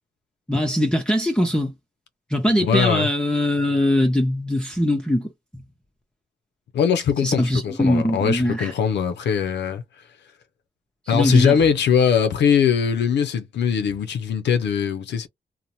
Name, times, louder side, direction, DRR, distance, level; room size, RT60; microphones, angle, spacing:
voice 1, 0.5-1.7 2.3-5.3 7.2-8.7 11.1-11.6, left 1 dB, 5° left, 0.6 m, -21 dB
voice 2, 2.6-3.1 6.7-9.8 11.1-15.3, left 7 dB, 85° left, 0.4 m, -21 dB
2.6 x 2.0 x 2.8 m
cardioid pair, 80°, 18 cm